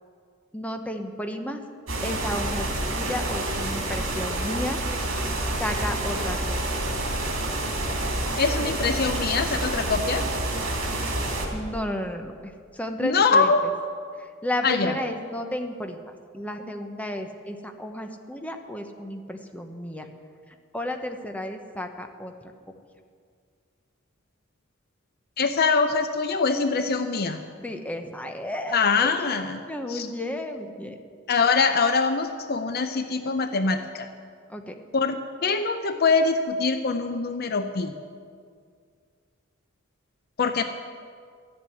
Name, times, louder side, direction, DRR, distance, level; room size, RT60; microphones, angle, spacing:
voice 1, 0.5-1.6 2.0-4.8 5.6-6.8 11.5-13.5 14.2-16.0 16.3-20.1 20.7-22.3 27.6-29.3 29.7-31.0 34.5-34.7, left 1 dB, 5° left, 5 dB, 0.9 m, -32 dB
sound 1, 1.9-11.5, right 1 dB, 75° right, 2.7 m, -28 dB
voice 2, 8.4-10.3 13.0-13.6 14.6-14.9 25.4-27.4 28.7-29.6 29.9-30.1 31.3-34.1 34.9-37.9 40.4-40.6, left 4 dB, 50° left, 8 dB, 0.6 m, -23 dB
13.0 x 7.6 x 9.4 m, 2.1 s
head